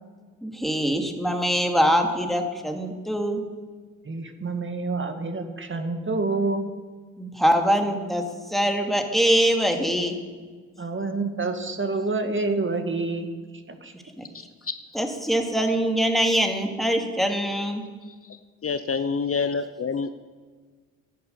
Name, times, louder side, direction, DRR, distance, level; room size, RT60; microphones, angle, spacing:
voice 1, 0.4-3.4 7.2-10.1 14.2-14.3 14.9-17.8, equal, ahead, 3 dB, 2.6 m, -23 dB
voice 2, 4.1-6.7 10.8-13.3 13.7-13.9, right 3 dB, 30° right, 6 dB, 2.0 m, -27 dB
voice 3, 14.3-14.7 18.0-20.1, left 5 dB, 35° left, 11 dB, 0.8 m, -28 dB
10.5 x 10.5 x 8.3 m, 1.5 s
hypercardioid pair, 40°, 37 cm